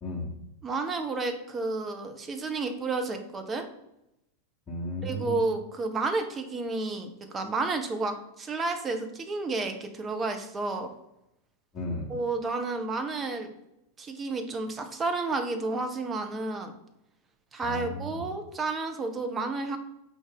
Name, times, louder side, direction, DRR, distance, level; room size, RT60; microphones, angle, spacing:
voice 1, 0.0-0.4 4.7-5.4 11.7-12.1 17.6-18.2, left 1 dB, 25° left, -7 dB, 1.0 m, -34 dB
voice 2, 0.6-3.7 5.0-10.9 12.1-13.5 14.0-16.7 17.5-19.8, right 3 dB, 20° right, 6 dB, 0.6 m, -31 dB
4.7 x 2.6 x 3.9 m, 0.85 s
figure-of-eight pair, 90°, 0 cm